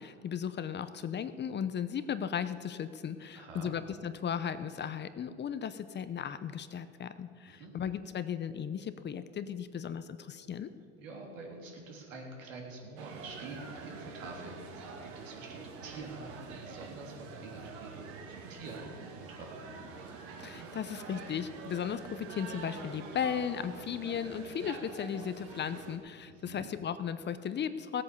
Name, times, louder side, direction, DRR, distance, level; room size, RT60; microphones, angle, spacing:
voice 1, 0.0-10.7 20.4-28.0, left 8 dB, 30° left, 12 dB, 0.7 m, -36 dB
voice 2, 3.3-3.7 7.5-7.7 11.0-19.7 26.3-26.7, right 3 dB, 90° right, -1 dB, 3.4 m, -46 dB
sound 1, 13.0-26.0, right 4 dB, 70° right, 2.4 m, -46 dB
16.5 x 8.5 x 7.0 m, 2.2 s
hypercardioid pair, 95°, 38 cm